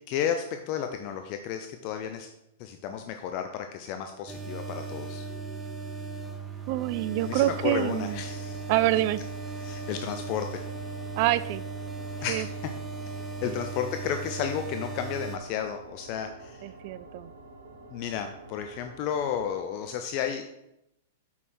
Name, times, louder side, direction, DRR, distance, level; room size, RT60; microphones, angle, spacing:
voice 1, 0.1-2.3 2.6-5.3 7.2-8.6 9.6-10.6 12.2-12.4 13.4-16.6 17.9-20.4, left 8 dB, 45° left, 6 dB, 0.6 m, -32 dB
sound 1, 4.3-15.4, right 4 dB, 10° right, 0.8 m, -37 dB
voice 2, 6.7-8.2 8.7-9.2 11.2-11.6 12.3-12.5 13.5-13.6 16.6-17.3, right 14 dB, 50° right, 16 dB, 0.4 m, -26 dB
sound 2, 7.3-19.6, right 2 dB, 80° right, 1.1 m, -49 dB
6.2 x 5.5 x 4.4 m, 0.83 s
hypercardioid pair, 125°, 0 cm